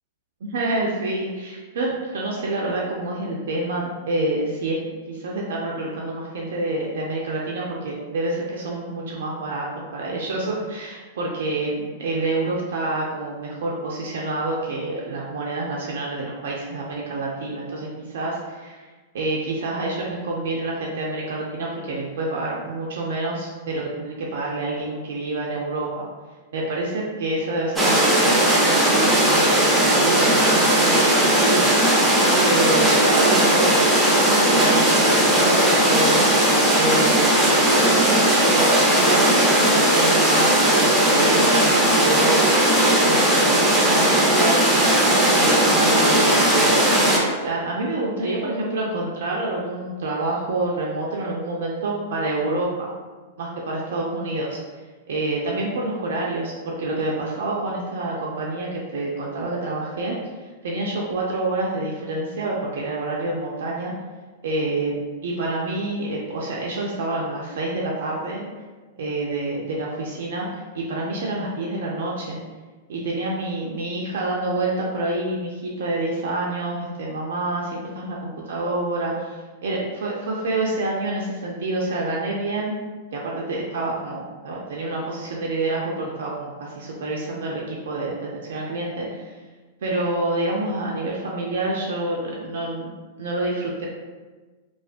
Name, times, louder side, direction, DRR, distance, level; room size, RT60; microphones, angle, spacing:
voice 1, 0.4-4.8 5.1-9.7 9.9-18.9 19.1-26.1 26.5-32.1 32.4-33.8 34.1-36.3 36.8-37.5 37.8-42.6 43.0-45.0 45.4-46.9 47.4-52.9 53.4-54.6 55.1-63.9 64.4-68.5 69.0-72.4 72.9-82.8 83.1-89.3 89.8-92.9 93.2-93.9, right 2 dB, 70° right, -3 dB, 0.4 m, -27 dB
sound 1, 27.8-47.2, right 1 dB, 5° right, 0.6 m, -17 dB
2.3 x 2.2 x 2.4 m, 1.3 s
hypercardioid pair, 110°, 0 cm